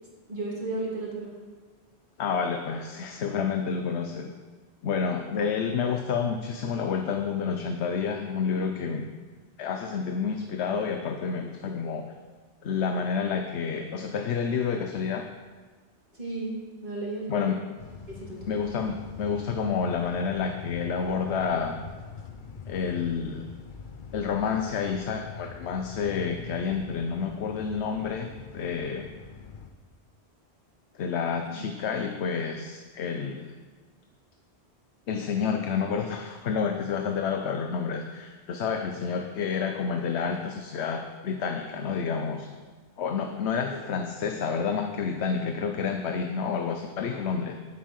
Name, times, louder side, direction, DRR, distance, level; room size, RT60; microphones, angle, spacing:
voice 1, 0.3-1.3 16.1-17.5 18.1-18.5 31.5-31.6, right 2 dB, 45° right, -4 dB, 2.9 m, -34 dB
voice 2, 2.2-4.3 4.8-9.1 9.6-12.1 12.6-15.2 17.3-17.6 18.5-21.8 22.7-23.5 24.1-29.1 30.9-33.5 35.1-42.5 43.0-47.5, left 6 dB, 80° left, 5 dB, 1.0 m, -29 dB
sound 1, 17.8-29.7, left 5 dB, 50° left, 0.9 m, -43 dB
10.5 x 8.2 x 6.4 m, 1.4 s
omnidirectional pair, 1.1 m